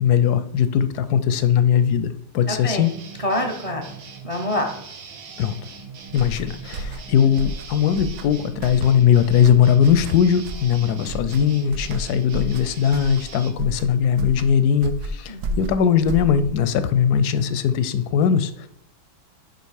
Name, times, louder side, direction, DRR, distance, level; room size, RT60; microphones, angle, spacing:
voice 1, 0.0-2.1 2.3-2.9 5.4-5.6 6.1-18.7, left 8 dB, 70° left, 12 dB, 0.9 m, -19 dB
voice 2, 2.5-2.9 3.2-3.8 4.2-4.7 15.3-15.6, left 1 dB, 30° right, 3 dB, 0.6 m, -26 dB
sound 1, 2.8-13.5, right 5 dB, 85° right, 1.8 m, -40 dB
sound 2, 6.1-16.7, right 1 dB, 65° right, 1.1 m, -33 dB
6.8 x 4.9 x 4.7 m, 0.74 s
omnidirectional pair, 2.1 m